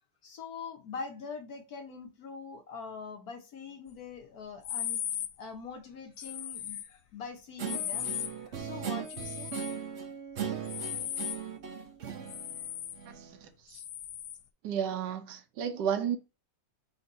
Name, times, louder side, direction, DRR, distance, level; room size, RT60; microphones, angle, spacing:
voice 1, 0.2-5.0 5.4-9.5, left 5 dB, 60° left, 1.3 m, -43 dB
sound 1, 4.6-5.3 6.2-6.9 7.7-8.3 9.1-9.8 10.7-11.4 12.3-13.0 13.7-14.4, left 11 dB, 75° left, 0.7 m, -37 dB
Guitar, 7.6-13.4, right 8 dB, 55° right, 0.8 m, -39 dB
voice 2, 13.1-13.8 14.6-16.2, right 8 dB, 75° right, 1.3 m, -33 dB
4.3 x 2.8 x 3.9 m
omnidirectional pair, 2.0 m